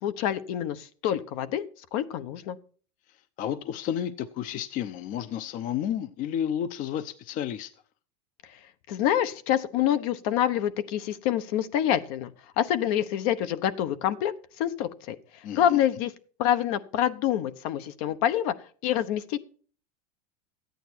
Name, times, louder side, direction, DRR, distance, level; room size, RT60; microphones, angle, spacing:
voice 1, 0.0-1.6 1.9-2.6 8.9-12.3 12.6-15.2 15.5-16.1 16.4-18.5 18.8-19.4, left 11 dB, 65° left, 1.0 m, -26 dB
voice 2, 3.4-7.7 15.4-15.8, left 10 dB, 45° left, 0.7 m, -31 dB
13.5 x 9.1 x 4.5 m
supercardioid pair, 145°, 19 cm